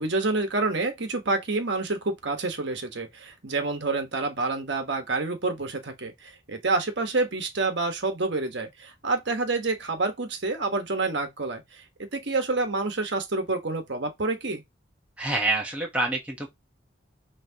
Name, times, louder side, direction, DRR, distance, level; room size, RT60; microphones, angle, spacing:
voice 1, 0.0-14.6, right 3 dB, 60° right, 1.2 m, -28 dB
voice 2, 15.2-16.5, right 2 dB, 5° right, 1.0 m, -27 dB
5.9 x 3.1 x 2.8 m
head